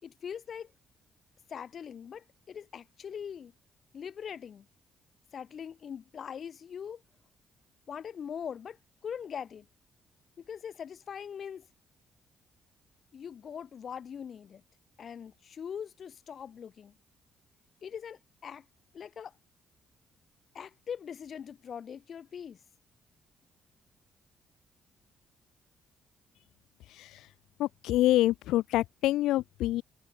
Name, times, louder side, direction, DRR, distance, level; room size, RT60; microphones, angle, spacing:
voice 1, 0.0-0.7 1.5-3.5 3.9-4.7 5.3-7.0 7.9-8.8 9.0-9.6 10.4-11.7 13.1-14.6 15.0-16.9 17.8-18.6 18.9-19.3 20.5-22.6, left 7 dB, 55° left, 6.6 m, -41 dB
voice 2, 27.6-29.8, left 15 dB, 90° left, 1.3 m, -26 dB
cardioid pair, 90°, 0 cm